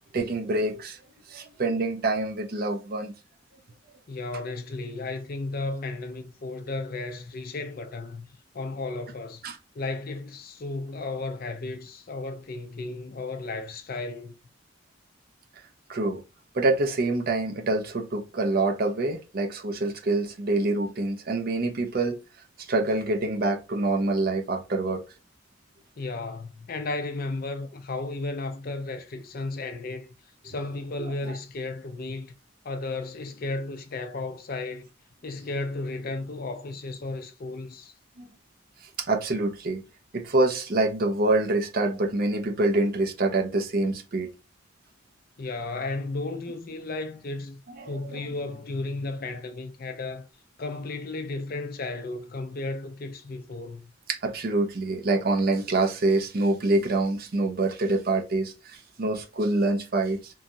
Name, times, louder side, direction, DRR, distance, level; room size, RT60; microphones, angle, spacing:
voice 1, 0.1-1.0 1.3-3.1 9.4-9.6 15.9-16.2 16.5-22.2 22.7-25.0 31.1-31.3 38.2-38.3 39.1-39.8 40.1-44.3 47.8-48.2 54.1-60.3, right 2 dB, 50° right, 0.6 m, -26 dB
voice 2, 4.1-8.3 8.5-9.4 9.7-14.4 26.0-30.1 30.4-32.3 32.6-34.9 35.2-37.9 45.4-47.6 47.9-50.3 50.6-53.9, left 3 dB, 50° left, 0.5 m, -34 dB
3.1 x 2.2 x 2.6 m
head